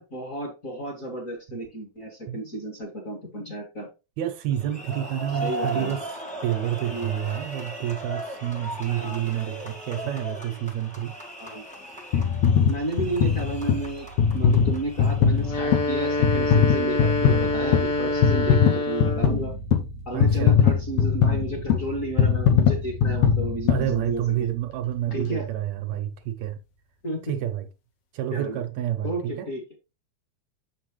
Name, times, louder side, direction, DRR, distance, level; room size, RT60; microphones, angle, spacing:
voice 1, 0.0-3.9 5.4-6.0 6.9-7.1 8.9-9.2 11.4-11.6 12.7-14.1 14.3-19.5 20.1-24.5 25.1-25.5 27.0-27.4 28.3-28.6 29.0-29.6, right 2 dB, 30° left, 1.8 m, -32 dB
voice 2, 4.2-6.0 6.4-11.1 20.1-20.6 23.7-26.6 27.3-27.7 28.1-29.5, right 11 dB, 75° right, 2.0 m, -29 dB
sound 1, 4.5-15.6, right 1 dB, 10° left, 0.4 m, -37 dB
sound 2, 12.1-24.5 25.1-25.2, left 7 dB, 85° left, 2.6 m, -22 dB
sound 3, 15.4-19.4, left 2 dB, 50° left, 3.3 m, -26 dB
7.4 x 6.0 x 3.1 m
omnidirectional pair, 3.4 m